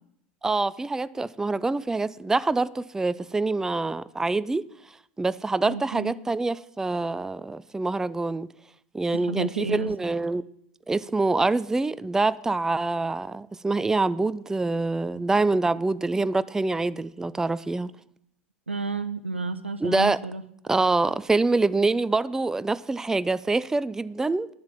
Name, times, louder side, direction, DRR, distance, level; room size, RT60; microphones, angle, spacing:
voice 1, 0.4-4.7 5.2-8.5 8.9-10.4 10.9-17.9 19.8-20.2 20.7-24.5, right 3 dB, 10° right, 0.3 m, -25 dB
voice 2, 5.6-6.1 9.1-9.9 18.7-20.4, right 4 dB, 90° right, 0.7 m, -31 dB
10.0 x 7.2 x 7.4 m
figure-of-eight pair, 80°, 6 cm